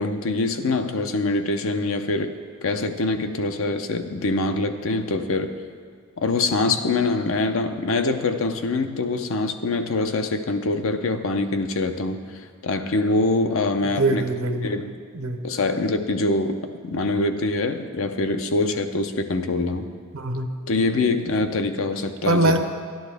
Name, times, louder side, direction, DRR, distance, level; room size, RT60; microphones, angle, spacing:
voice 1, 0.0-2.4 2.6-5.5 6.2-12.2 12.6-14.2 14.6-15.0 15.4-16.6 16.8-19.9 20.7-22.6, left 2 dB, 70° left, 8 dB, 0.7 m, -24 dB
voice 2, 14.0-14.7 15.1-15.4 20.1-20.5 22.3-22.6, right 2 dB, 85° right, 6 dB, 0.8 m, -22 dB
12.0 x 10.5 x 3.4 m, 2.2 s
head